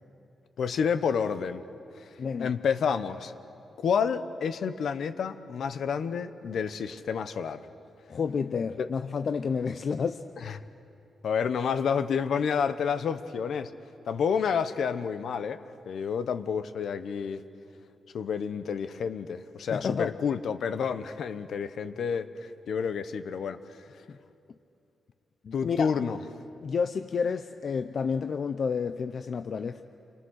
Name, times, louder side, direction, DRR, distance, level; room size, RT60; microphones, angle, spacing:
voice 1, 0.6-1.6 2.0-2.1 2.4-3.3 3.8-7.6 8.8-8.9 10.4-10.6 11.2-13.7 14.1-17.4 18.1-23.6 25.5-26.2, left 6 dB, 65° left, 11 dB, 0.9 m, -29 dB
voice 2, 2.2-2.5 8.1-10.2 19.7-20.1 25.4-25.9 26.6-29.8, left 5 dB, 45° left, 9 dB, 0.5 m, -30 dB
28.5 x 23.5 x 6.5 m, 2.7 s
wide cardioid pair, 160°, 0 cm